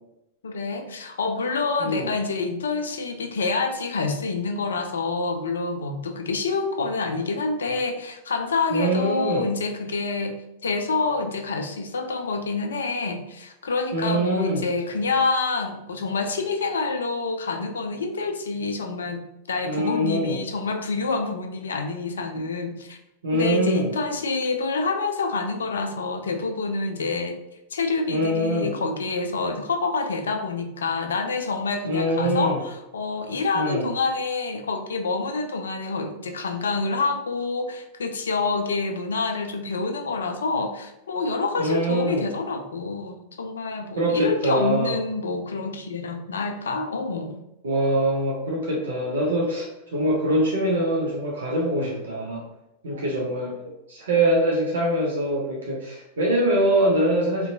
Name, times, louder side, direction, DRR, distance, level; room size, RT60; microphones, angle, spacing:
voice 1, 0.4-23.0 23.3-27.4 27.7-47.4, left 3 dB, 70° left, 6 dB, 0.3 m, -27 dB
voice 2, 1.8-2.1 8.7-9.5 13.9-14.6 19.6-20.4 23.2-23.9 28.1-28.7 31.8-32.6 33.5-33.9 41.6-42.2 44.0-45.0 47.6-52.4 52.8-53.6 53.9-57.5, right 1 dB, 65° right, -3 dB, 0.5 m, -23 dB
2.5 x 2.1 x 2.6 m, 0.89 s
figure-of-eight pair, 90°, 0 cm